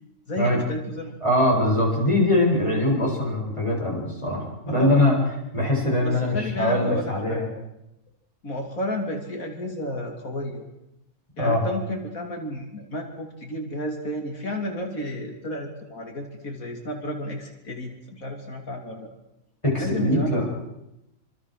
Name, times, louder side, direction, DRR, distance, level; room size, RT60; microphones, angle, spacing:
voice 1, 0.3-1.1 4.7-5.1 6.0-7.4 8.4-10.6 11.4-19.1 19.8-20.4, left 1 dB, 85° left, 3 dB, 3.4 m, -32 dB
voice 2, 1.2-5.1 5.5-7.5 11.4-11.6 19.6-20.4, left 1 dB, 20° left, -2 dB, 8.2 m, -22 dB
26.0 x 25.5 x 6.7 m, 0.88 s
omnidirectional pair, 1.4 m